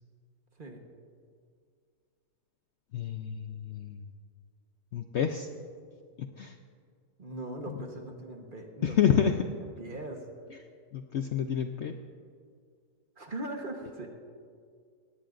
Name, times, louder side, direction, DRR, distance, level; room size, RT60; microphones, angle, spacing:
voice 1, 2.9-4.0 4.9-5.5 6.2-6.6 7.7-7.8 8.8-9.4 10.9-11.9, left 8 dB, 60° left, 6 dB, 0.7 m, -28 dB
voice 2, 7.2-9.0 9.8-10.2 13.2-14.1, right 1 dB, 35° right, 2 dB, 1.3 m, -40 dB
19.5 x 17.0 x 2.6 m, 2.1 s
omnidirectional pair, 1.6 m